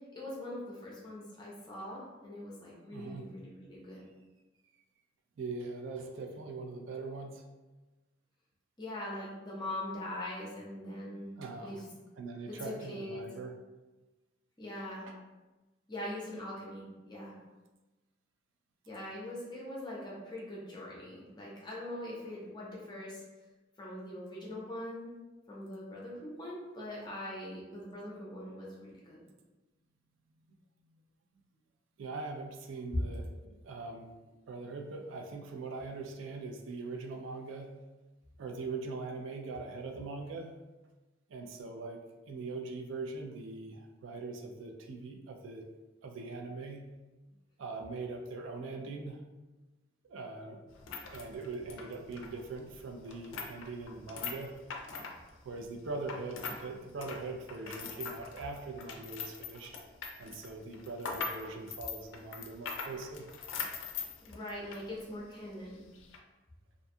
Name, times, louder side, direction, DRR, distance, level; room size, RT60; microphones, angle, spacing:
voice 1, 0.1-4.0 8.8-11.8 12.5-13.2 14.6-15.1 15.9-17.3 18.9-23.2 23.8-25.1 25.5-29.2 64.3-65.8, left 1 dB, 20° left, -5 dB, 0.5 m, -42 dB
voice 2, 2.9-3.3 5.4-7.5 11.4-11.7 12.2-13.5 15.1-15.2 32.0-34.1 34.5-37.8 38.4-40.5 41.3-45.6 46.0-46.9 47.6-49.2 50.1-50.6 51.1-54.5 55.4-59.8 60.2-63.3, right 3 dB, 80° right, 3 dB, 0.4 m, -41 dB
sound 1, 50.7-56.6 56.9-64.9 65.2-65.3 65.9-66.2, left 5 dB, 90° left, 0.4 m, -42 dB
2.5 x 2.2 x 2.6 m, 1.1 s
head